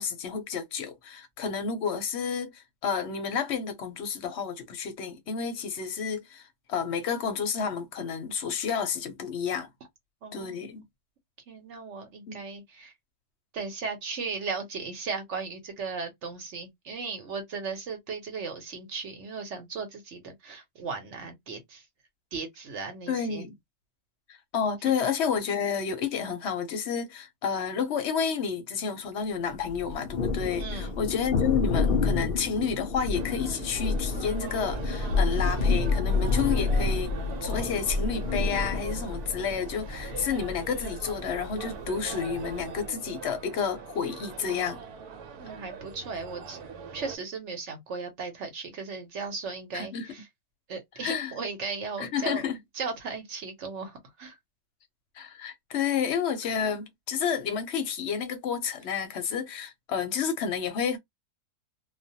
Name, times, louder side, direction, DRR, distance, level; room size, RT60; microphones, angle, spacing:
voice 1, 0.0-6.4 6.7-9.7 10.3-10.8 12.3-12.4 23.1-23.5 24.3-37.1 37.4-44.8 49.7-50.1 51.0-51.3 52.0-52.6 55.2-61.0, left 6 dB, 60° left, 0.7 m, -30 dB
voice 2, 10.2-10.8 11.5-12.9 13.5-21.9 22.3-23.5 24.8-24.9 30.6-31.0 45.4-46.6 46.9-50.3 50.7-52.4 52.7-54.4, right 4 dB, 60° right, 1.0 m, -36 dB
Thunder, 29.7-42.9, left 3 dB, 90° left, 0.4 m, -29 dB
sound 1, 33.1-47.2, right 6 dB, 85° right, 1.1 m, -42 dB
2.4 x 2.2 x 2.7 m
omnidirectional pair, 1.6 m